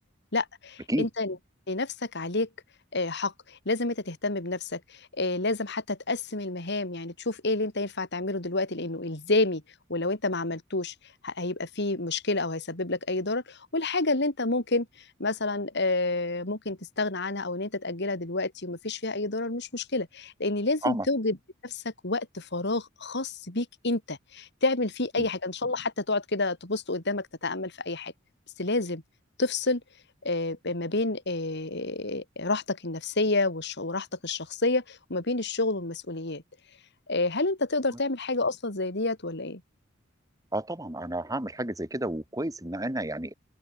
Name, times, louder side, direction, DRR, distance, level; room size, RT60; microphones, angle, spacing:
voice 1, 0.3-1.4 1.7-2.5 2.9-9.6 9.9-10.9 11.2-21.4 21.6-28.1 28.6-29.0 29.4-29.8 30.2-36.4 37.1-39.6, left 2 dB, 60° left, 3.3 m, -29 dB
voice 2, 40.5-43.3, right 1 dB, 15° right, 3.2 m, -31 dB
open air
head